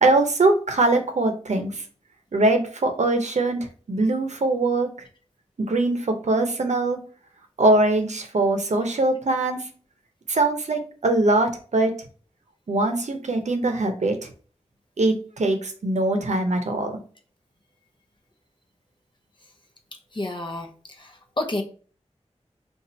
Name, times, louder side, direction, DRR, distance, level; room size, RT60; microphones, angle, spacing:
voice 1, 0.0-1.8 2.3-4.9 5.6-7.0 7.6-9.6 10.3-11.9 12.7-14.2 15.0-17.0, right 2 dB, 85° right, 5 dB, 0.6 m, -22 dB
voice 2, 20.1-20.7 21.0-21.1 21.4-21.6, left 2 dB, 45° left, 3 dB, 0.7 m, -28 dB
2.7 x 2.4 x 4.1 m, 0.40 s
wide cardioid pair, 65°, 12 cm